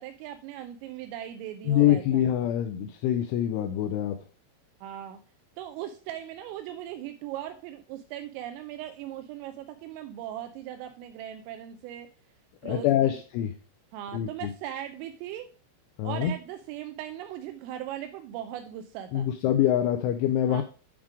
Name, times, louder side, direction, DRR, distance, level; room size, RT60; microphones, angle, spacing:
voice 1, 0.0-2.2 4.8-5.2 5.6-12.1 12.6-13.2 13.9-15.5 16.0-19.3 20.5-20.6, right 11 dB, 85° right, 7 dB, 3.1 m, -39 dB
voice 2, 1.7-4.2 12.6-13.5 14.1-14.5 16.0-16.3 19.1-20.6, left 11 dB, 85° left, 6 dB, 2.8 m, -25 dB
8.8 x 3.6 x 4.8 m, 0.38 s
omnidirectional pair, 5.9 m